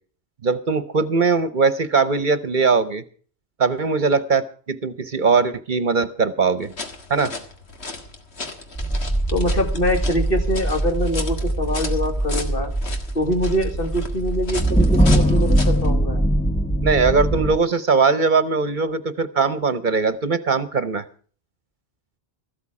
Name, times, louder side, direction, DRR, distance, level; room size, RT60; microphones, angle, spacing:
voice 1, 0.4-3.0 3.6-6.7 7.1-7.3 16.8-21.0, right 4 dB, 50° right, 13 dB, 1.0 m, -20 dB
sound 1, 6.6-15.9, left 3 dB, 75° left, 2.0 m, -35 dB
sound 2, 8.8-17.6, right 1 dB, 10° left, 0.7 m, -22 dB
voice 2, 9.3-12.7 13.1-16.2, equal, 60° left, 4 dB, 2.4 m, -24 dB
14.0 x 12.5 x 4.8 m, 0.43 s
omnidirectional pair, 1.1 m